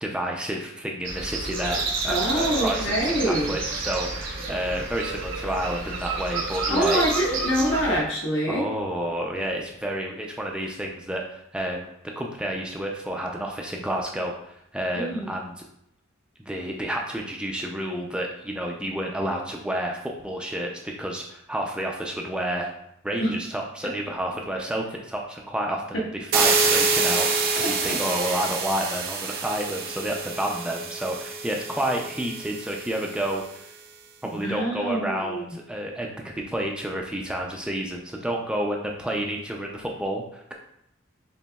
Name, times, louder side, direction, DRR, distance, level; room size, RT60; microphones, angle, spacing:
voice 1, 0.0-7.0 8.5-15.5 16.4-22.7 23.0-33.6 34.2-40.5, right 1 dB, 5° right, 0 dB, 0.4 m, -30 dB
sound 1, 1.0-8.0, right 3 dB, 75° right, 1.2 m, -30 dB
voice 2, 2.1-3.5 6.7-8.7 14.9-15.3 23.2-23.3 25.9-26.0 27.6-28.0 34.2-35.5, equal, 75° left, -3 dB, 1.3 m, -25 dB
sound 2, 26.3-33.2, right 4 dB, 50° right, 0.6 m, -26 dB
6.8 x 3.0 x 2.3 m, 0.76 s
head